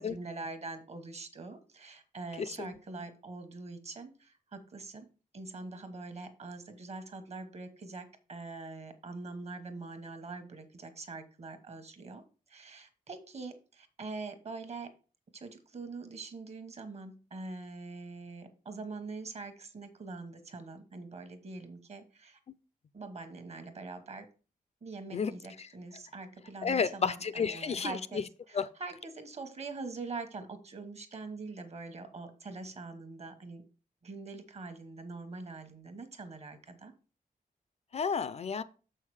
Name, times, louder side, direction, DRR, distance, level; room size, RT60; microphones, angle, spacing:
voice 1, 0.0-5.1 5.3-12.2 12.5-14.9 15.3-22.4 22.9-24.3 24.8-33.6 34.0-36.9, right 3 dB, 45° right, 1.1 m, -44 dB
voice 2, 2.4-2.7 25.1-25.3 25.6-25.7 26.6-28.2 28.5-28.7 37.9-38.6, left 6 dB, 45° left, 0.4 m, -31 dB
7.0 x 5.7 x 4.7 m
wide cardioid pair, 175°, 15 cm